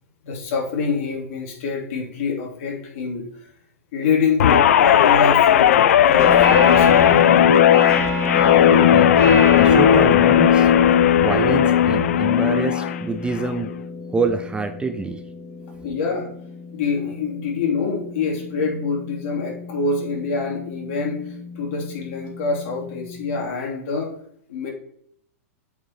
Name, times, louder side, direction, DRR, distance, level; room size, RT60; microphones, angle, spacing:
voice 1, 0.2-3.2 3.9-7.2 15.8-16.3 16.7-24.1 24.5-24.7, left 4 dB, 60° left, -1 dB, 3.0 m, -26 dB
Guitar, 4.4-13.0 13.4-13.7, left 9 dB, 75° left, 0.5 m, -15 dB
sound 1, 6.1-23.4, left 3 dB, 25° left, 3.5 m, -29 dB
voice 2, 9.6-10.7 11.2-13.7 14.1-15.2, right 4 dB, 10° right, 9 dB, 0.6 m, -26 dB
8.1 x 5.0 x 4.5 m, 0.68 s
hypercardioid pair, 115°, 8 cm